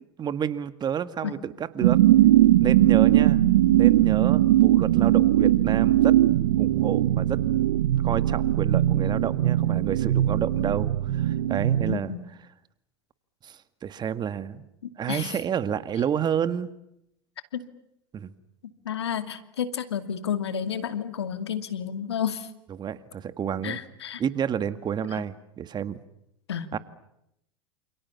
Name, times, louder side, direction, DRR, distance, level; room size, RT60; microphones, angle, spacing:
voice 1, 0.2-2.0 2.6-3.4 3.7-6.2 6.6-7.4 8.0-12.1 13.4-14.7 15.0-16.7 18.1-18.3 22.8-23.8 24.2-26.0 26.7-26.8, right 8 dB, 30° right, 12 dB, 2.0 m, -30 dB
sound 1, 1.8-12.0, right 14 dB, 75° right, 1.3 m, -20 dB
voice 2, 11.9-12.2 15.1-15.4 17.5-17.6 18.8-22.5 23.6-24.2 25.1-25.2 26.5-26.7, left 8 dB, 85° left, 10 dB, 2.5 m, -31 dB
29.0 x 28.5 x 7.2 m, 0.80 s
hypercardioid pair, 90°, 13 cm